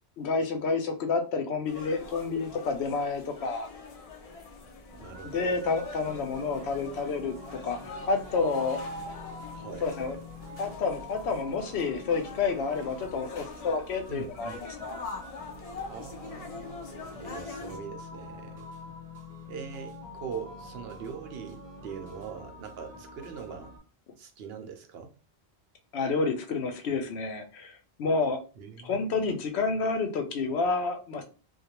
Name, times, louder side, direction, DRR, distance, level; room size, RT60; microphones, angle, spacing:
voice 1, 0.2-3.7 5.2-8.8 9.8-10.2 10.6-14.5 14.8-15.0 25.9-28.4 28.8-31.2, left 4 dB, 75° left, 0.9 m, -29 dB
sound 1, 1.7-17.8, left 3 dB, 50° left, 0.4 m, -43 dB
sound 2, 4.9-23.8, left 1 dB, 15° right, 0.8 m, -46 dB
voice 2, 5.0-5.6 9.5-10.1 14.1-14.6 15.9-16.8 17.2-18.6 19.5-23.8 24.2-25.1 28.6-29.3, right 6 dB, 70° right, 0.8 m, -42 dB
2.4 x 2.2 x 2.8 m
omnidirectional pair, 1.1 m